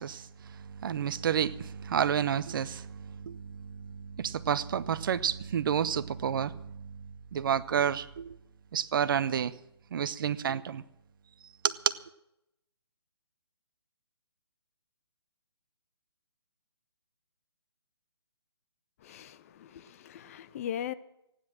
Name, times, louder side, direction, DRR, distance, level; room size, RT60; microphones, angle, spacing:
voice 1, 0.0-7.0 7.3-8.4 8.7-9.5 9.9-10.8 11.6-12.0, right 8 dB, 50° right, 0.8 m, -30 dB
voice 2, 19.0-20.9, left 10 dB, 35° left, 0.7 m, -39 dB
15.0 x 10.0 x 7.4 m
hypercardioid pair, 150°, 14 cm